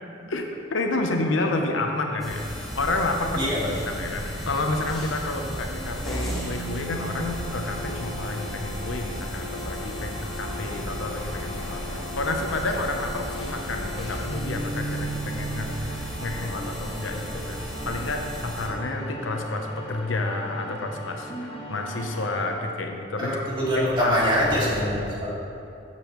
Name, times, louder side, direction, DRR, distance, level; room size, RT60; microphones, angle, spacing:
voice 1, 0.3-23.4 23.8-24.2, left 2 dB, 75° left, 3 dB, 0.8 m, -30 dB
sound 1, 2.2-18.7, equal, ahead, 1.8 m, -34 dB
voice 2, 3.3-4.1 23.2-25.3, equal, 25° right, -7 dB, 2.3 m, -24 dB
sound 2, 6.3-23.1, right 1 dB, 30° left, 1.6 m, -38 dB
13.5 x 7.1 x 3.1 m, 2.6 s
head